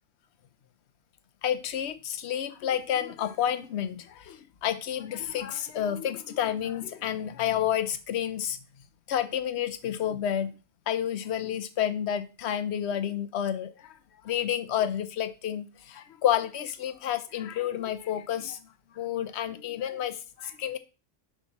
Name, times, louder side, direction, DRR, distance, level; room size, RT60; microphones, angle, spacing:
voice 1, 1.4-8.6 9.1-10.5 10.9-14.0 14.2-18.6 18.9-20.8, left 10 dB, 65° left, 0.9 m, -30 dB
7.1 x 5.8 x 2.9 m
omnidirectional pair, 1.3 m